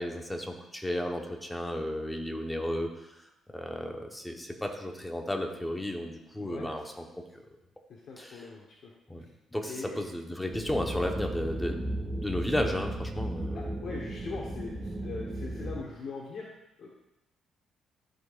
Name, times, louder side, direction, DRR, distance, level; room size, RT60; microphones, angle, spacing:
voice 1, 0.0-2.9 3.5-7.0 8.2-8.5 9.1-9.2 9.5-13.7, left 1 dB, 10° left, 2 dB, 1.2 m, -33 dB
voice 2, 6.4-6.7 7.9-8.9 9.2-9.3 9.6-10.1 13.5-16.5 16.8-16.9, left 4 dB, 65° left, -3 dB, 1.2 m, -41 dB
sound 1, 10.5-15.9, right 1 dB, 30° right, 1.5 m, -35 dB
13.5 x 5.3 x 2.6 m, 0.94 s
cardioid pair, 90°, 0 cm